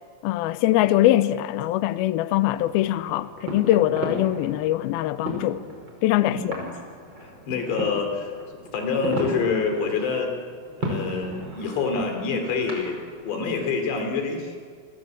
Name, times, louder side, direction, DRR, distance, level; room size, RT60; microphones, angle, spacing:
voice 1, 0.2-5.6 6.0-6.6, left 14 dB, 85° left, 2.1 m, -22 dB
sound 1, 2.5-14.0, equal, 25° right, 5.9 m, -35 dB
voice 2, 6.3-6.7 7.2-8.3 8.7-10.3 10.8-14.6, left 4 dB, 65° left, 5.6 m, -27 dB
29.5 x 24.5 x 8.0 m
omnidirectional pair, 5.4 m